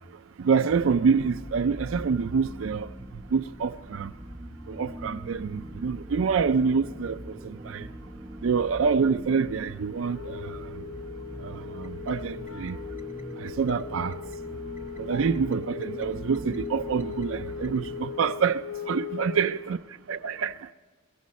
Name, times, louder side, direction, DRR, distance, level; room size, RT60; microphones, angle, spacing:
voice 1, 0.4-2.9 3.3-4.1 4.7-7.9 8.4-10.8 11.4-12.8 13.4-14.2 15.0-19.8 20.1-20.7, right 5 dB, 65° right, 0.4 m, -27 dB
sound 1, 0.7-18.2, equal, 10° right, 0.9 m, -42 dB
Wind instrument woodwind instrument, 10.0-19.7, left 6 dB, 75° left, 0.6 m, -39 dB
21.0 x 16.5 x 4.1 m
head